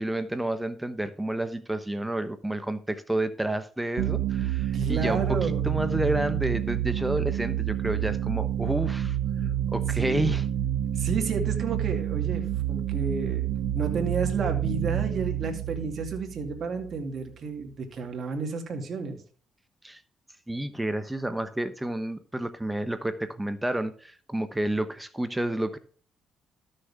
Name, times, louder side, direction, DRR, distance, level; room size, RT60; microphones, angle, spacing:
voice 1, 0.0-9.2 9.7-10.4 19.8-20.0 20.5-25.8, right 1 dB, 10° right, 0.9 m, -30 dB
sound 1, 4.0-17.3, right 11 dB, 85° right, 0.9 m, -28 dB
voice 2, 4.7-5.6 9.4-9.5 9.9-10.4 11.0-12.4 12.7-13.5 13.7-19.2, right 4 dB, 55° right, 2.3 m, -31 dB
13.0 x 6.6 x 3.5 m
cardioid pair, 90°, 0 cm